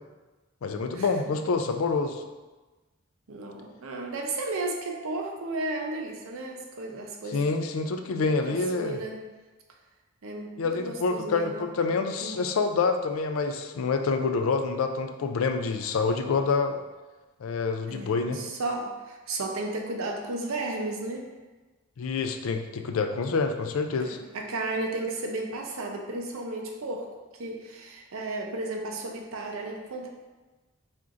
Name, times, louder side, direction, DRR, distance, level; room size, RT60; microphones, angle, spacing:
voice 1, 0.6-2.3 7.3-9.0 10.6-16.8 17.4-18.4 22.0-24.2, left 4 dB, 85° left, 6 dB, 0.4 m, -27 dB
voice 2, 3.3-7.4 8.2-9.2 10.2-11.6 12.2-12.4 17.9-21.3 24.1-27.1 27.4-30.1, right 2 dB, 80° right, 1 dB, 0.6 m, -34 dB
4.3 x 3.7 x 2.5 m, 1.2 s
head